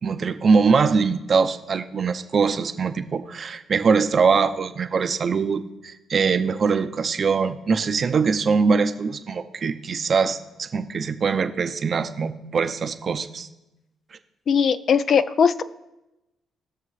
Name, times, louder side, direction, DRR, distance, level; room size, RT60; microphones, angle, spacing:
voice 1, 0.0-13.5, right 5 dB, 45° right, 9 dB, 0.7 m, -22 dB
voice 2, 14.5-15.6, left 6 dB, 55° left, 13 dB, 0.5 m, -19 dB
19.5 x 6.6 x 3.2 m, 0.96 s
cardioid pair, 90°, 0 cm